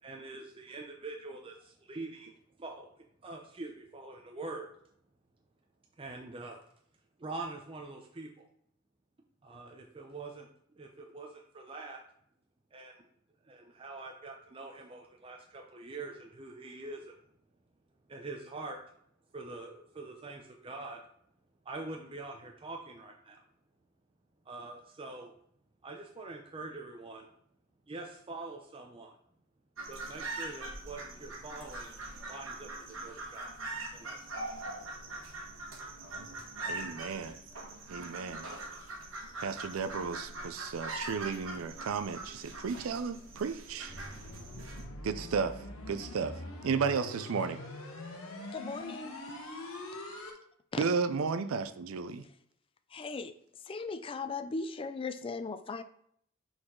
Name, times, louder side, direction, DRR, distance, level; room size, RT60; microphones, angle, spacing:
voice 1, 0.0-2.3 2.6-2.9 3.2-4.7 6.0-6.6 7.2-8.5 9.4-10.5 10.8-12.0 12.7-13.1 13.4-17.2 18.1-18.8 19.3-21.0 21.6-23.4 24.5-25.3 25.8-27.3 27.9-29.2 29.9-32.0 32.3-33.6 33.9-34.7 36.0-36.3, right 3 dB, 25° right, 2 dB, 0.5 m, -44 dB
sound 1, 29.8-44.8, right 2 dB, 65° right, 1.4 m, -42 dB
voice 2, 36.7-37.4 37.9-38.5 39.4-44.0 44.6-44.7 45.0-47.6 49.3-49.5 50.8-52.2, right 5 dB, 85° right, 11 dB, 0.4 m, -34 dB
sound 2, 43.9-50.3, left 1 dB, 85° left, 1.4 m, -43 dB
voice 3, 48.5-49.1 50.7-50.8 52.9-53.3 53.7-55.8, left 4 dB, 25° left, 10 dB, 0.3 m, -37 dB
6.3 x 4.7 x 3.7 m, 0.66 s
head